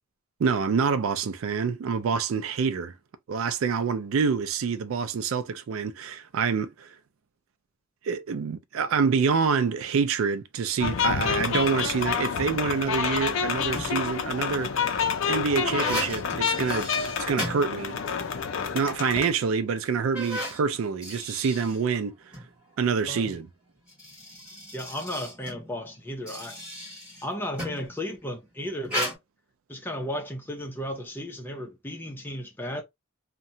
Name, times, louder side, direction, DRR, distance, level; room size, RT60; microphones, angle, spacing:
voice 1, 0.4-2.9 3.3-6.9 8.0-15.0 15.3-16.9 17.2-18.0 18.7-22.2 22.8-23.5, right 5 dB, 80° right, 0.4 m, -26 dB
sound 1, 10.8-19.3, left 6 dB, 65° left, 0.4 m, -28 dB
sound 2, 13.7-14.1 14.8-18.2 18.6-18.7 19.4-19.5 20.0-22.5 23.7-27.9 28.8-29.1, equal, 5° right, 1.5 m, -36 dB
voice 2, 23.1-23.4 24.7-26.6 27.2-29.2 29.7-32.8, left 1 dB, 10° left, 0.6 m, -34 dB
2.8 x 2.2 x 2.6 m
head